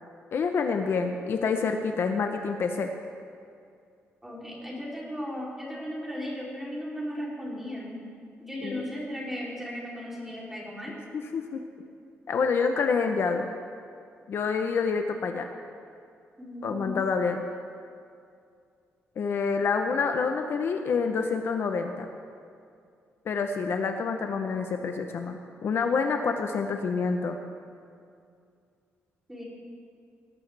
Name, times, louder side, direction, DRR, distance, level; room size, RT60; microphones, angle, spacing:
voice 1, 0.3-2.9 8.6-8.8 11.1-11.6 12.3-13.5 14.3-15.5 16.6-17.4 19.2-22.1 23.3-27.4, left 5 dB, 55° left, 5 dB, 0.7 m, -27 dB
voice 2, 4.2-8.0 8.4-11.0 16.4-17.0 29.3-29.4, equal, 5° right, -5 dB, 3.1 m, -36 dB
19.5 x 12.0 x 3.3 m, 2.4 s
wide cardioid pair, 160°, 5 cm